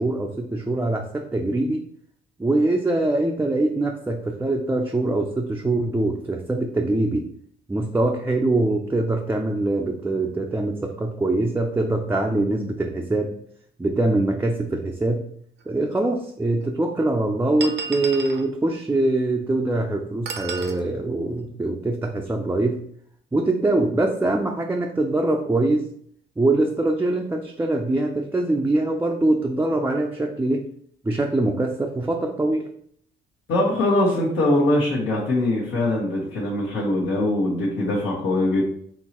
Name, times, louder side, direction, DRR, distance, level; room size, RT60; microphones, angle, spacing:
voice 1, 0.0-1.8 2.4-7.3 7.7-13.3 13.8-15.2 15.7-22.8 23.3-25.9 26.4-30.6 31.0-32.7, right 2 dB, 10° right, 1 dB, 0.4 m, -23 dB
sound 1, 15.6-15.7 16.6-16.7 17.6-18.5 20.3-20.8, right 5 dB, 60° right, 0.6 m, -32 dB
voice 2, 33.5-38.6, left 1 dB, 75° left, -7 dB, 1.3 m, -22 dB
4.5 x 3.0 x 3.0 m, 0.65 s
cardioid pair, 90°, 20 cm